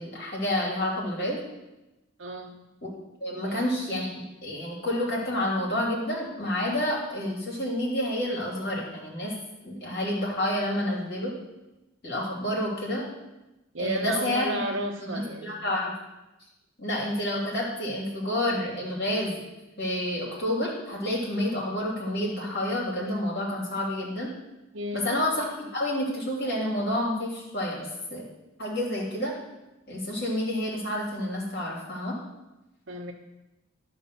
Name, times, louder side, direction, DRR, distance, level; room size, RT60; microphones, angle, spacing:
voice 1, 0.0-1.4 2.8-2.9 3.2-4.1 4.4-9.3 9.6-11.3 12.0-13.1 13.8-14.6 15.0-15.9 16.8-19.4 19.8-24.3 24.9-28.2 28.6-29.3 29.9-32.1, left 1 dB, 55° left, -4 dB, 2.8 m, -29 dB
voice 2, 2.2-2.6 3.3-3.6 13.7-15.6 24.7-25.1 32.9-33.1, right 1 dB, 65° right, 2 dB, 1.0 m, -33 dB
11.0 x 3.8 x 6.8 m, 1.0 s
head